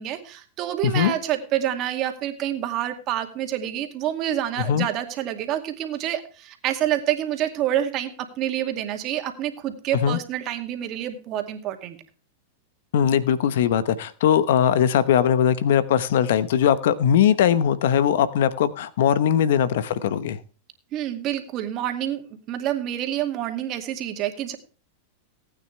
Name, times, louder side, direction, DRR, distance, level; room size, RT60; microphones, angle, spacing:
voice 1, 0.0-8.1 8.4-12.0 20.9-24.6, right 11 dB, 40° right, 6 dB, 2.3 m, -27 dB
voice 2, 0.8-1.1 4.7-4.9 9.9-10.2 12.9-20.4, left 9 dB, 70° left, 15 dB, 1.0 m, -20 dB
18.5 x 9.2 x 3.3 m, 0.37 s
hypercardioid pair, 115°, 0 cm